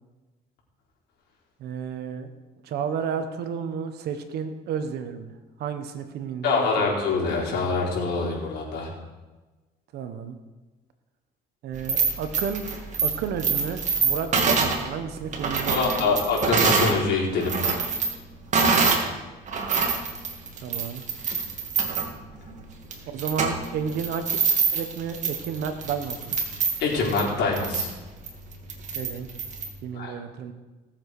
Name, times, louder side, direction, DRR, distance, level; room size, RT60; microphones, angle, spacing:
voice 1, 1.6-2.3 2.6-5.3 5.6-6.9 9.9-10.4 11.6-12.6 13.0-16.2 20.6-21.0 23.1-24.3 24.7-26.3 28.9-29.3 29.8-30.5, right 7 dB, 75° right, 8 dB, 1.4 m, -32 dB
voice 2, 6.4-8.9 15.7-17.5 26.8-27.9 29.9-30.1, left 4 dB, 75° left, -3 dB, 4.2 m, -25 dB
sound 1, 11.7-17.0 17.3-19.1 19.5-29.7, right 5 dB, 45° right, 2.1 m, -26 dB
18.0 x 7.5 x 5.0 m, 1.2 s
cardioid pair, 110°, 17 cm